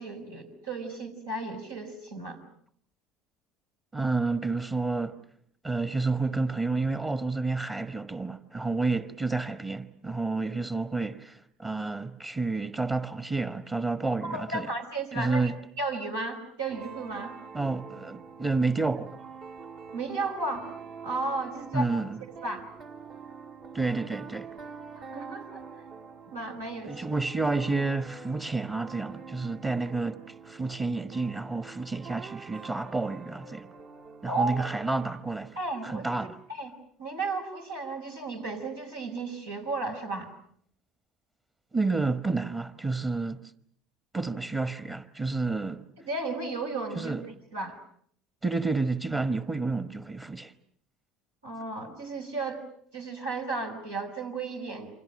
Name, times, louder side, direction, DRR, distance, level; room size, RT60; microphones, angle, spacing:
voice 1, 0.0-2.4 14.2-15.5 15.8-17.3 19.9-20.7 21.0-21.9 22.4-22.7 25.0-25.7 26.3-27.0 34.3-34.7 35.6-36.7 37.0-40.3 46.0-47.8 51.4-52.6 52.9-54.9, right 3 dB, 85° right, 5.3 m, -34 dB
voice 2, 3.9-5.2 5.6-14.7 15.1-15.6 17.5-19.2 21.7-22.2 23.7-24.5 26.8-33.7 34.2-35.6 35.8-36.4 41.7-43.4 44.1-45.9 46.9-47.2 48.4-50.5, right 3 dB, 25° right, 1.3 m, -30 dB
sound 1, 16.7-35.2, right 5 dB, 55° right, 2.0 m, -46 dB
29.5 x 25.5 x 6.5 m
hypercardioid pair, 70°, 0 cm